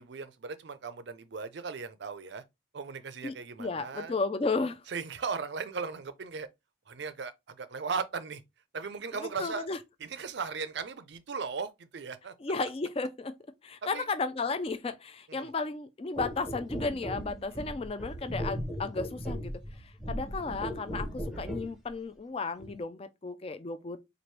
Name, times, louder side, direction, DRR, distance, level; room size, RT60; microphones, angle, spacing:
voice 1, 0.0-2.4 2.7-4.2 4.9-6.5 6.9-8.4 8.7-9.7 10.0-12.3 13.9-14.1 15.3-15.5 17.5-17.7, right 5 dB, 60° right, 0.5 m, -37 dB
voice 2, 3.2-4.8 9.2-9.8 12.4-13.3 13.6-19.5 19.8-24.0, left 3 dB, 30° left, 0.3 m, -34 dB
sound 1, 16.2-21.7 22.6-22.8, equal, ahead, 0.7 m, -37 dB
4.4 x 2.5 x 3.1 m
head